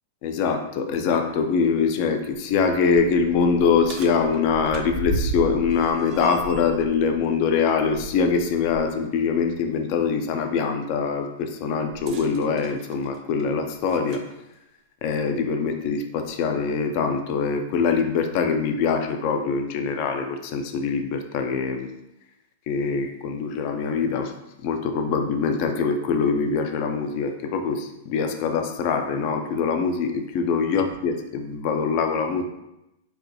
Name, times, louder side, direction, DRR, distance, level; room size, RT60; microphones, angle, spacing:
voice 1, 0.2-14.2 15.0-21.9 22.7-24.3 24.6-32.4, left 5 dB, 50° left, 6 dB, 0.4 m, -23 dB
sound 1, 0.9-1.0 1.5-1.6 2.2-8.9 9.3-9.5 11.9-14.3 15.3-15.4 16.2-16.3, right 3 dB, 40° right, 0.4 m, -35 dB
4.1 x 2.2 x 2.7 m, 0.89 s
hypercardioid pair, 105°, 0 cm